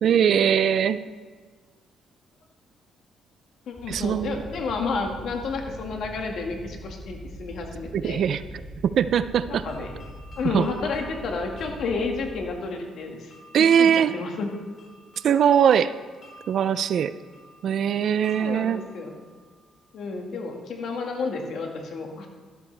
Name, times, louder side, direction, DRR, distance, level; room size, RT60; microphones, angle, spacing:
voice 1, 0.0-1.0 3.9-4.4 7.9-8.4 8.8-9.7 10.5-10.7 13.5-14.1 15.2-15.9 16.5-17.1 17.6-18.8, right 8 dB, 60° right, 14 dB, 0.4 m, -21 dB
voice 2, 3.7-8.2 9.5-9.9 10.4-13.3 13.8-14.5 18.4-19.1 19.9-22.3, left 4 dB, 65° left, 2 dB, 1.8 m, -31 dB
sound 1, 3.7-12.5, equal, ahead, 2.6 m, -42 dB
sound 2, 9.3-20.1, left 1 dB, 45° left, 4.0 m, -52 dB
13.0 x 12.5 x 3.4 m, 1.5 s
cardioid pair, 115°, 0 cm